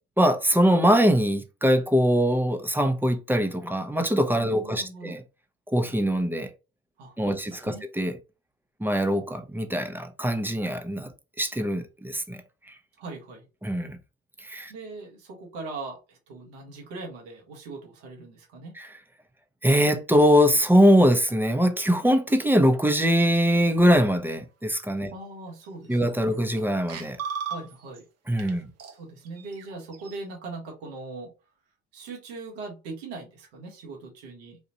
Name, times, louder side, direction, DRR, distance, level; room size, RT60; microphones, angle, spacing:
voice 1, 0.2-5.2 5.7-6.5 7.2-8.2 8.8-11.1 11.4-12.4 13.6-14.0 14.4-14.7 18.8-18.9 19.6-25.1 25.9-27.2 28.3-28.7, equal, 5° right, 0.8 m, -22 dB
voice 2, 4.4-5.2 7.0-7.8 13.0-13.5 14.7-18.7 25.1-26.2 27.5-28.0 28.4-28.6 28.9-31.3 31.9-34.6, right 3 dB, 90° right, 1.5 m, -40 dB
sound 1, 25.6-25.7 26.1-26.6 26.9-28.0 28.4-28.5 28.8-30.2, right 6 dB, 55° right, 0.9 m, -37 dB
4.1 x 2.5 x 2.9 m
supercardioid pair, 70°, 31 cm